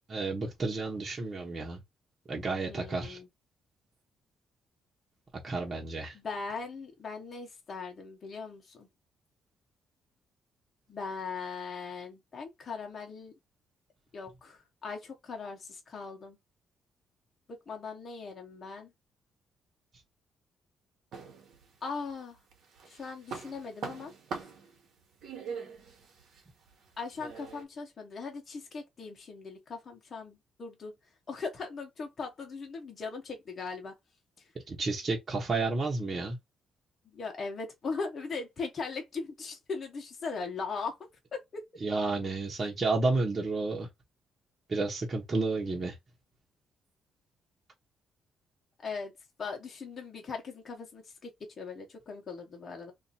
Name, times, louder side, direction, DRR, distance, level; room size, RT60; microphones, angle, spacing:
voice 1, 0.1-1.8 2.3-3.2 5.4-6.1 34.7-36.4 41.8-43.9 44.7-46.0, right 3 dB, 35° right, 1.1 m, -31 dB
voice 2, 2.7-3.3 6.1-8.9 10.9-13.3 14.1-16.4 17.5-18.9 21.8-22.4 22.9-24.1 27.0-30.9 31.3-33.9 37.1-41.0 41.3-41.7 42.2-42.3 48.8-49.1 49.4-51.3 51.6-52.9, left 4 dB, 45° left, 1.1 m, -39 dB
sound 1, 21.1-22.1 22.5-27.6, right 5 dB, 75° right, 1.3 m, -43 dB
2.8 x 2.5 x 4.1 m
cardioid pair, 90°, 0 cm